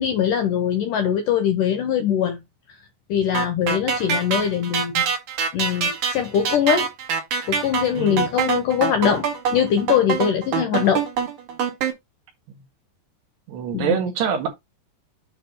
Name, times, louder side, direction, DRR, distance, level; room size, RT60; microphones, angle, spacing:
voice 1, 0.0-2.4 3.1-5.1 5.5-6.9 7.5-9.3 9.5-11.0 13.7-14.0, left 8 dB, 80° left, 1.9 m, -22 dB
sound 1, 3.3-11.9, right 6 dB, 55° right, 2.8 m, -24 dB
voice 2, 7.9-8.2 13.5-14.5, right 8 dB, 75° right, 3.8 m, -24 dB
9.2 x 3.4 x 5.3 m
omnidirectional pair, 5.0 m